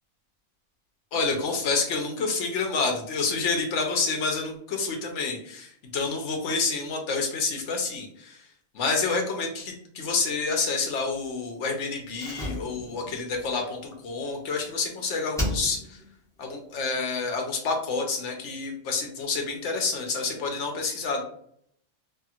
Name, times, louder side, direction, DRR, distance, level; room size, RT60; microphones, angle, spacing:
voice 1, 1.1-8.4 8.7-16.0 16.4-21.2, left 4 dB, 70° left, 2 dB, 1.0 m, -28 dB
Slam, 12.1-14.9 15.3-16.1 16.4-16.5, left 1 dB, 5° left, 0.9 m, -34 dB
2.8 x 2.6 x 2.4 m, 0.65 s
omnidirectional pair, 1.3 m